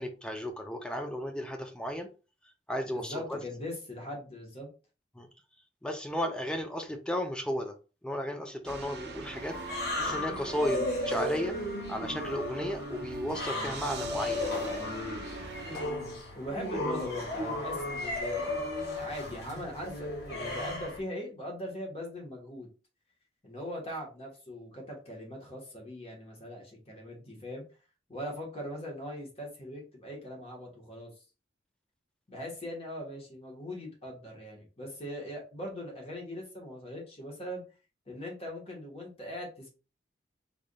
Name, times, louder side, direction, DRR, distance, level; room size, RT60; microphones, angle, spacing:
voice 1, 0.0-2.1 2.7-3.4 5.2-5.3 5.8-7.7 8.0-11.6 11.9-14.6, equal, 5° left, 5 dB, 0.4 m, -34 dB
voice 2, 2.8-4.7 16.3-22.7 23.4-27.6 28.1-31.2 32.3-37.6 38.1-39.7, left 1 dB, 35° left, 0 dB, 1.1 m, -40 dB
sound 1, 8.6-15.9, right 4 dB, 60° right, 0.5 m, -43 dB
sound 2, 9.5-21.0, left 1 dB, 60° left, 1.4 m, -35 dB
3.8 x 3.4 x 2.2 m, 0.33 s
head